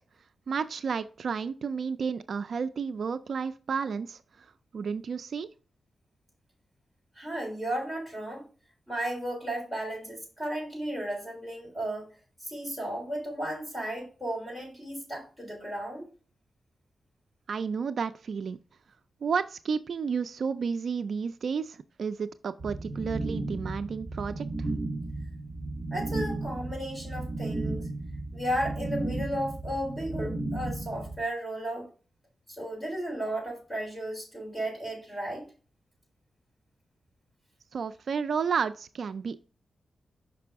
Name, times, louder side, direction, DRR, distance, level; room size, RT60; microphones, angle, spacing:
voice 1, 0.5-5.5 17.5-18.6 19.2-24.7 37.7-39.4, right 6 dB, 60° right, 11 dB, 0.3 m, -32 dB
voice 2, 7.2-8.4 8.9-12.1 12.4-16.1 25.9-27.9 28.3-31.9 32.5-35.5, right 1 dB, 10° left, -1 dB, 3.6 m, -34 dB
sound 1, 22.6-31.2, right 2 dB, 25° right, 2.9 m, -34 dB
5.9 x 5.3 x 3.4 m, 0.36 s
wide cardioid pair, 130°, 0 cm